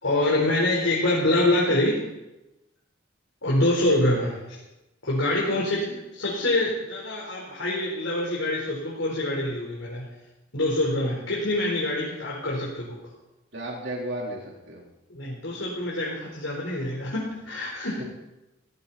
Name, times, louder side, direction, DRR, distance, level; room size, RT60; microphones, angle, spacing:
voice 1, 0.0-2.0 3.4-4.6 5.0-10.1 10.5-13.0 15.1-18.0, left 1 dB, 80° left, -4 dB, 4.3 m, -25 dB
voice 2, 13.5-14.8 18.0-18.1, right 1 dB, 65° right, -2 dB, 3.9 m, -33 dB
18.0 x 17.0 x 4.3 m, 0.96 s
head